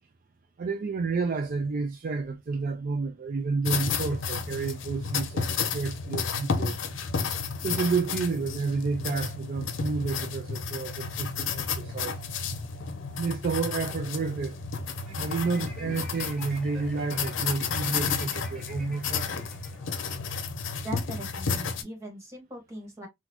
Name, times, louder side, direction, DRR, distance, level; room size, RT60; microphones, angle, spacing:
voice 1, 0.6-6.8 7.6-12.2 13.2-14.6 15.2-19.3, right 4 dB, 45° right, 0.4 m, -30 dB
sound 1, 3.7-21.8, left 5 dB, 85° left, 0.6 m, -32 dB
sound 2, 15.1-20.3, equal, ahead, 1.4 m, -48 dB
voice 2, 20.8-23.1, right 1 dB, 15° right, 1.6 m, -40 dB
4.0 x 2.4 x 2.8 m
head